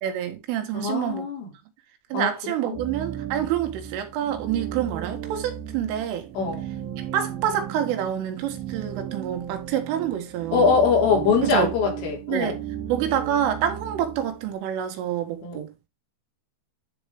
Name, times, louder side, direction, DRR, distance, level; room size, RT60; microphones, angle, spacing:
voice 1, 0.0-1.3 2.1-6.3 7.0-10.8 11.4-11.7 12.3-12.6 12.9-15.7, right 10 dB, 85° right, 4.0 m, -27 dB
voice 2, 0.7-1.5 2.1-2.9 6.4-6.7 10.5-12.6 15.4-15.7, left 5 dB, 80° left, 5.8 m, -23 dB
sound 1, 2.7-14.5, right 10 dB, 70° right, 2.2 m, -35 dB
12.0 x 4.4 x 3.5 m
omnidirectional pair, 5.6 m